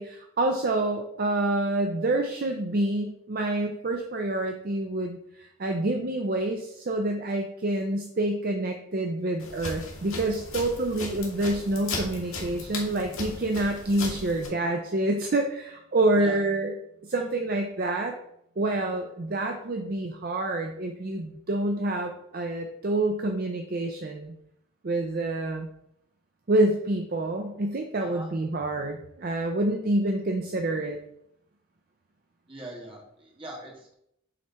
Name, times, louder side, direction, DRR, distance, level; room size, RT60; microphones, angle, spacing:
voice 1, 0.0-16.7 17.0-18.1 18.6-24.3 24.8-25.7 26.5-31.0, right 2 dB, 45° right, 3 dB, 0.5 m, -27 dB
sound 1, 9.4-14.5, left 2 dB, 90° left, 1.8 m, -37 dB
voice 2, 32.5-34.0, right 1 dB, 25° right, -2 dB, 1.6 m, -42 dB
7.8 x 3.2 x 4.2 m, 0.75 s
head